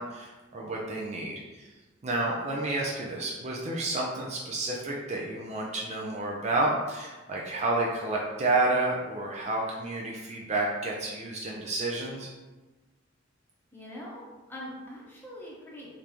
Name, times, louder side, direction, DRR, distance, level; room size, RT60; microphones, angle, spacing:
voice 1, 0.0-1.7 2.0-12.3, right 2 dB, 35° right, -3 dB, 0.4 m, -30 dB
voice 2, 13.7-15.9, left 1 dB, 10° left, -5 dB, 0.8 m, -43 dB
3.7 x 3.3 x 2.9 m, 1.2 s
head